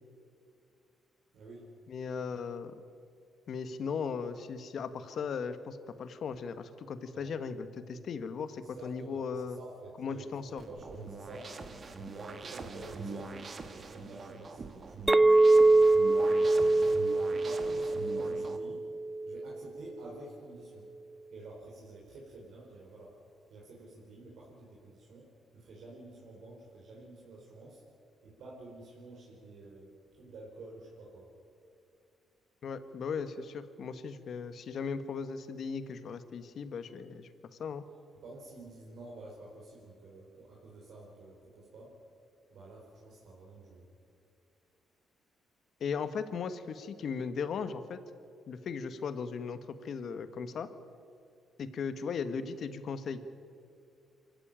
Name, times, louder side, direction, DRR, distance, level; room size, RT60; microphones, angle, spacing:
voice 1, 1.3-1.6 7.1-7.3 8.6-11.5 12.1-17.0 17.3-18.8 19.2-20.9 21.3-23.2 23.5-25.3 25.5-27.8 28.2-31.3 38.2-41.9 42.5-43.9, right 2 dB, 70° right, -3 dB, 4.9 m, -49 dB
voice 2, 1.9-2.7 3.5-9.6 10.0-10.6 32.6-37.3 37.6-37.8 45.8-48.0 48.5-50.7 51.6-53.2, left 5 dB, 60° left, 11 dB, 1.5 m, -37 dB
sound 1, 10.6-18.6, right 4 dB, 40° right, 1.7 m, -43 dB
Chink clink, 15.1-19.6, right 2 dB, 15° right, 0.4 m, -24 dB
24.5 x 14.5 x 9.0 m, 2.4 s
cardioid pair, 90°, 0 cm